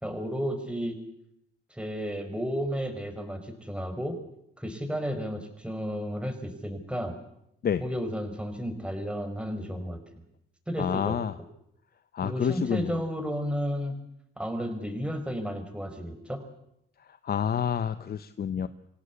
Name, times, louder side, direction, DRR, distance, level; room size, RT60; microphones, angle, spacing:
voice 1, 0.0-1.0 1.7-4.2 4.6-7.1 7.8-10.0 10.7-11.2 12.2-14.0 14.4-16.4, equal, 5° right, 7 dB, 5.1 m, -32 dB
voice 2, 10.8-11.3 12.1-12.9 17.2-18.7, left 8 dB, 50° left, 12 dB, 1.0 m, -28 dB
26.0 x 17.0 x 8.4 m, 0.78 s
cardioid pair, 90°, 20 cm